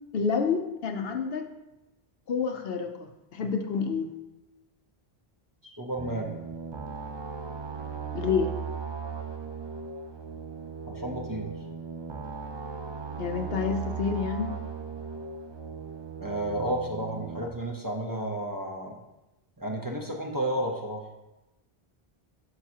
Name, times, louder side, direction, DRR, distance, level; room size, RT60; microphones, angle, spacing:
voice 1, 0.1-1.5 2.3-4.1 8.1-8.6 13.2-14.6, left 5 dB, 70° left, 6 dB, 0.9 m, -29 dB
voice 2, 5.6-6.4 10.9-11.5 16.2-19.0 19.6-21.1, right 1 dB, 20° right, 0 dB, 0.8 m, -32 dB
sound 1, 6.0-17.5, right 6 dB, 40° right, 0.4 m, -37 dB
11.5 x 4.8 x 2.9 m, 0.99 s
omnidirectional pair, 1.0 m